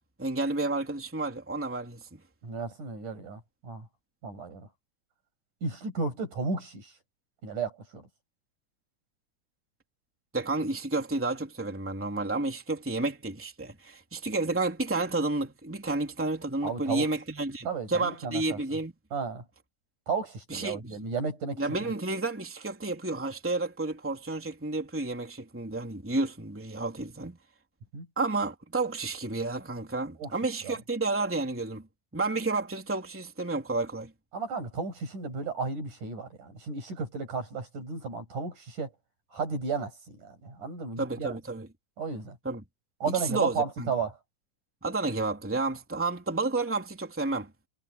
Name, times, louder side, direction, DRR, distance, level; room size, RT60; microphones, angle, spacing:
voice 1, 0.2-2.2 10.3-18.9 20.5-20.8 21.6-27.4 28.2-31.8 32.1-34.1 41.0-41.7 42.4-42.6 43.0-43.9 44.8-47.5, right 3 dB, 5° right, 2.9 m, -31 dB
voice 2, 2.4-3.9 4.2-4.7 5.6-6.9 7.4-8.1 16.6-17.1 17.7-18.6 19.1-19.4 20.1-21.9 27.9-28.1 30.2-30.3 30.6-30.8 34.3-38.9 39.3-41.4 42.0-42.4 43.0-44.1, right 4 dB, 80° right, 9.6 m, -33 dB
omnidirectional pair, 3.5 m